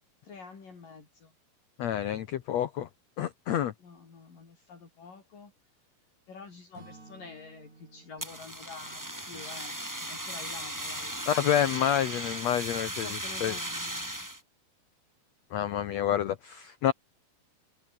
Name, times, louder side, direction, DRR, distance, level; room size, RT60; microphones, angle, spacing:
voice 1, 0.2-1.3 3.8-5.5 6.3-11.6 13.0-14.3, left 5 dB, 55° left, 6.9 m, -48 dB
voice 2, 1.8-2.9 3.2-3.7 11.3-13.5 15.5-16.9, left 10 dB, 80° left, 1.5 m, -28 dB
Acoustic guitar / Strum, 6.7-10.7, right 3 dB, 45° right, 9.3 m, -56 dB
Fire, 8.2-14.4, right 1 dB, 5° right, 3.2 m, -37 dB
omnidirectional pair, 4.6 m